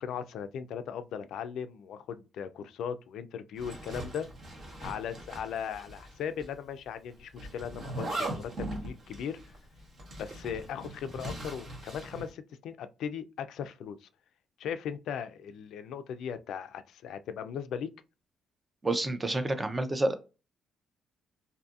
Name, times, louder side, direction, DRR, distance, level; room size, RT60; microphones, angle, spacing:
voice 1, 0.0-4.3 4.8-9.4 10.2-14.1 14.6-17.9, left 8 dB, 75° left, 0.3 m, -38 dB
Zipper (clothing), 3.6-6.1 6.4-6.5 7.4-12.3, right 1 dB, 55° right, 0.9 m, -40 dB
voice 2, 18.8-20.1, right 2 dB, 20° right, 0.5 m, -29 dB
2.6 x 2.6 x 2.4 m
cardioid pair, 90°, 0 cm